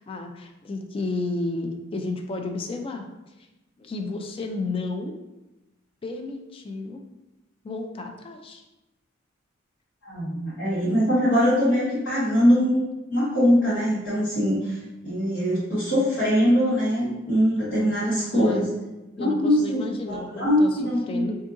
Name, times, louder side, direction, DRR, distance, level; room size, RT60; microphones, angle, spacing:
voice 1, 0.0-3.1 3.8-5.2 6.0-7.0 7.6-8.6 18.3-18.6 19.2-20.8 21.1-21.4, left 3 dB, 25° left, 4 dB, 0.3 m, -32 dB
voice 2, 10.0-14.8 15.0-18.7 19.2-19.8 20.1-21.3, equal, 70° left, -12 dB, 1.3 m, -22 dB
3.7 x 2.7 x 2.5 m, 1.0 s
head